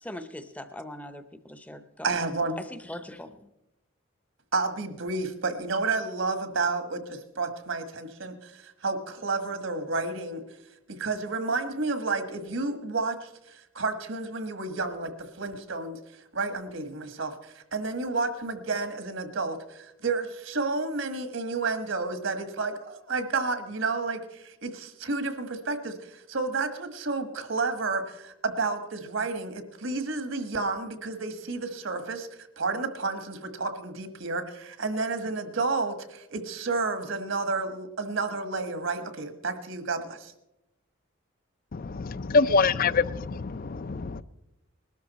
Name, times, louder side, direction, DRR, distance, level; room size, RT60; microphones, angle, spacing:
voice 1, 0.0-2.2 2.6-3.5, left 1 dB, 5° left, 10 dB, 0.7 m, -41 dB
voice 2, 2.0-2.6 4.5-10.4 10.9-16.0 16.3-32.3 32.6-40.3, right 3 dB, 65° right, 9 dB, 1.5 m, -31 dB
voice 3, 41.7-43.8, left 4 dB, 45° left, 17 dB, 0.5 m, -24 dB
20.5 x 12.5 x 4.2 m, 0.88 s
head